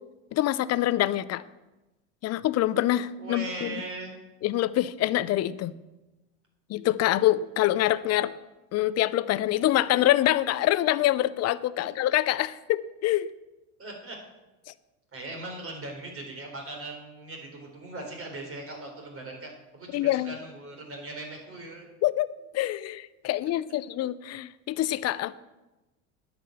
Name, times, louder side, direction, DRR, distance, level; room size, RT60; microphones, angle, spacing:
voice 1, 0.3-1.4 2.2-3.7 4.4-5.7 6.7-8.3 8.7-13.3 19.9-20.4 22.0-25.3, left 14 dB, 40° left, 17 dB, 0.6 m, -25 dB
voice 2, 3.2-4.2 11.8-11.9 13.8-14.2 15.1-19.5 19.8-21.9, right 2 dB, 35° right, 1 dB, 4.1 m, -39 dB
9.9 x 6.0 x 8.0 m, 1.1 s
hypercardioid pair, 85°, 39 cm